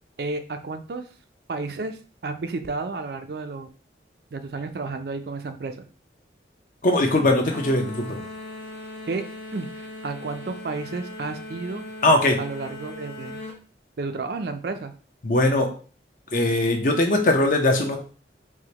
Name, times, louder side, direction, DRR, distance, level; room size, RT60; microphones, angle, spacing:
voice 1, 0.2-1.1 1.5-3.7 4.3-5.8 9.1-9.2 9.5-11.9 12.4-13.4 14.0-14.9, right 3 dB, 60° right, 8 dB, 0.4 m, -32 dB
voice 2, 6.8-8.2 12.0-12.4 15.2-15.7 16.3-18.0, left 1 dB, 45° left, 3 dB, 0.6 m, -20 dB
sound 1, 7.5-13.6, left 1 dB, 70° left, 1.6 m, -38 dB
4.8 x 2.1 x 2.8 m, 0.39 s
head